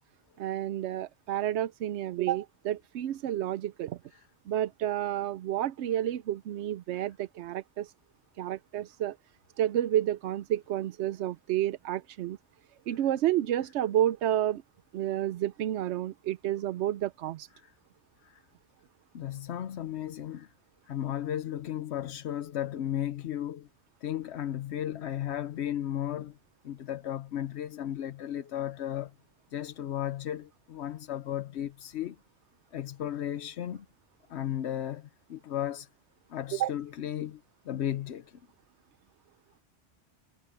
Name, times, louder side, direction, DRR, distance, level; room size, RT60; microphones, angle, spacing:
voice 1, 0.4-4.0 4.5-7.9 8.4-9.2 9.6-12.4 12.9-14.6 14.9-17.5 36.5-36.7, right 12 dB, 90° right, 0.9 m, -30 dB
voice 2, 19.1-20.5 20.9-23.7 24.0-26.3 26.6-29.1 29.5-32.1 32.7-33.8 34.3-35.9 36.3-37.4 37.7-38.2, left 11 dB, 75° left, 1.0 m, -34 dB
omnidirectional pair, 1.1 m